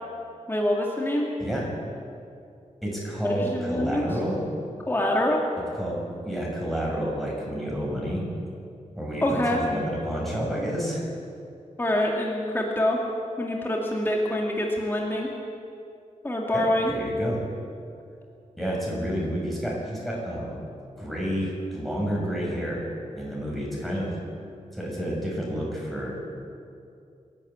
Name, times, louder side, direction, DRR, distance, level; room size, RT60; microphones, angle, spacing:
voice 1, 0.5-1.3 3.3-4.1 4.9-5.4 9.2-9.6 11.8-13.0 13.4-15.3 16.2-16.9, left 1 dB, 15° left, -1 dB, 2.1 m, -25 dB
voice 2, 2.8-4.4 5.8-8.2 8.9-11.1 16.5-16.6 16.9-17.4 18.6-20.6 21.0-22.8 23.1-24.2 24.7-26.1, equal, ahead, -4 dB, 6.3 m, -30 dB
27.5 x 11.5 x 8.7 m, 2.5 s
wide cardioid pair, 160°, 13 cm